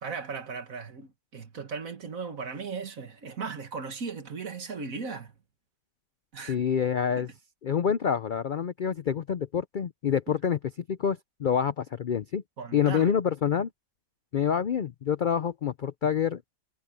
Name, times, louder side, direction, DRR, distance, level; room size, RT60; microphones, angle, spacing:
voice 1, 0.0-5.3 6.3-6.6 7.2-7.3 10.3-10.4 12.6-13.1, right 5 dB, 70° right, 2.1 m, -37 dB
voice 2, 6.5-7.3 7.6-10.6 10.9-12.4 12.7-13.7 14.3-16.4, left 8 dB, 60° left, 0.5 m, -27 dB
omnidirectional pair, 1.5 m